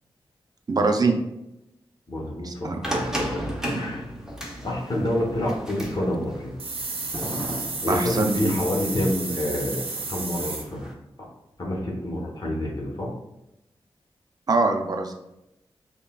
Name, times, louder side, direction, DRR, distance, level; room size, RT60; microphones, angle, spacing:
voice 1, 0.7-1.1 2.4-2.8 7.9-8.5 14.5-15.1, right 3 dB, 40° right, 4 dB, 0.5 m, -23 dB
voice 2, 2.1-3.3 3.7-4.0 4.6-6.5 7.8-10.8 11.6-13.1, left 1 dB, 40° left, -4 dB, 1.1 m, -28 dB
sound 1, 2.8-10.9, right 1 dB, 5° right, 0.8 m, -35 dB
sound 2, 6.6-10.6, right 3 dB, 70° right, 0.7 m, -32 dB
5.4 x 2.3 x 2.3 m, 0.88 s
cardioid pair, 60°, 10 cm